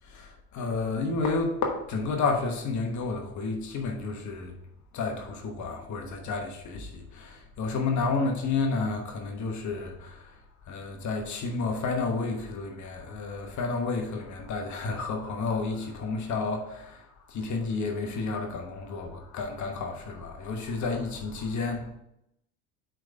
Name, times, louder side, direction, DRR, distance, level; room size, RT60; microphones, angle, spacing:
voice 1, 0.0-4.5 4.9-10.4 10.7-21.9, left 3 dB, 55° left, 1.1 m, -31 dB
5.0 x 4.5 x 5.2 m
supercardioid pair, 85°, 35 cm